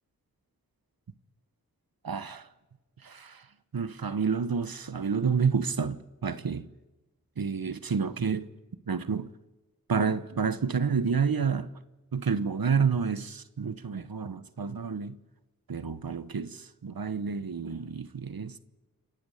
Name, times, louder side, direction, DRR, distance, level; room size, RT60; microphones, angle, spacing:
voice 1, 2.0-2.5 3.0-3.4 3.7-6.7 7.4-8.5 8.9-9.3 9.9-11.7 12.1-15.2 15.7-18.6, right 6 dB, 80° right, 1.1 m, -29 dB
28.0 x 12.0 x 9.2 m
wide cardioid pair, 45°, 35 cm